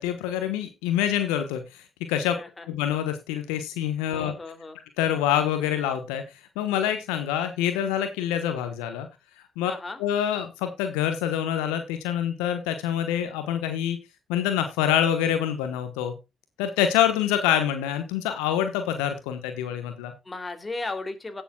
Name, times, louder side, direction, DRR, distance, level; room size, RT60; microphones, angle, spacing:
voice 1, 0.0-1.8 2.1-2.3 2.7-4.3 5.0-6.2 6.6-9.1 9.6-9.7 10.0-14.0 14.3-16.1 16.6-20.1, left 10 dB, 85° left, 8 dB, 1.1 m, -26 dB
voice 2, 4.1-4.8 9.7-10.0 20.3-21.4, left 3 dB, 25° left, 7 dB, 2.7 m, -35 dB
17.5 x 6.9 x 2.3 m, 0.25 s
hypercardioid pair, 50°, 0 cm